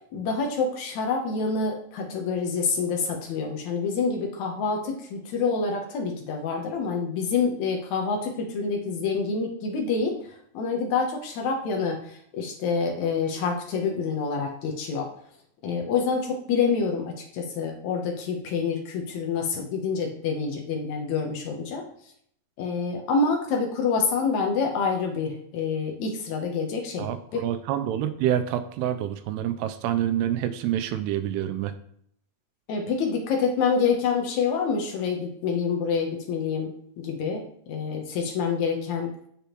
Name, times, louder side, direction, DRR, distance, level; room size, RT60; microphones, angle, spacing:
voice 1, 0.1-15.1 15.6-21.8 22.6-27.1 27.3-27.4 32.7-39.2, left 5 dB, 75° left, 1 dB, 1.7 m, -27 dB
voice 2, 27.0-31.7, right 11 dB, 85° right, 10 dB, 2.7 m, -27 dB
7.0 x 6.9 x 3.0 m, 0.66 s
omnidirectional pair, 4.7 m